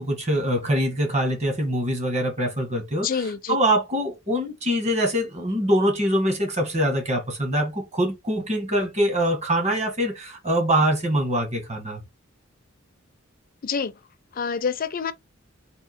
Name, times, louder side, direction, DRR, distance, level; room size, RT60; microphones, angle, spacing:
voice 1, 0.0-12.0, equal, 35° right, 1.4 m, -24 dB
voice 2, 3.0-3.6 13.6-13.9 14.3-15.1, left 6 dB, 45° left, 0.5 m, -27 dB
3.6 x 2.7 x 4.1 m
head